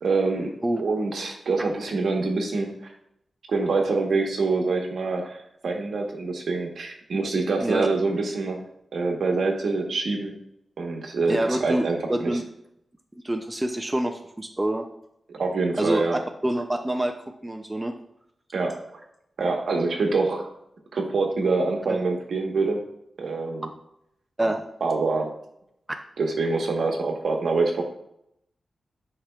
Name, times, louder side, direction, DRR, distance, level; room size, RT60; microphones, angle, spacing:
voice 1, 0.0-2.7 3.5-8.6 8.9-10.3 10.8-12.3 15.3-16.2 18.5-18.8 19.4-20.5 20.9-22.8 23.2-23.7 24.8-25.3 26.2-27.8, right 3 dB, 70° right, 2 dB, 1.1 m, -25 dB
voice 2, 11.3-11.8 12.1-12.4 13.1-14.8 15.8-17.1 17.4-17.9 21.9-22.0 24.4-24.7, right 1 dB, 15° right, 3 dB, 0.4 m, -26 dB
10.0 x 4.8 x 2.3 m, 0.77 s
wide cardioid pair, 170°, 0 cm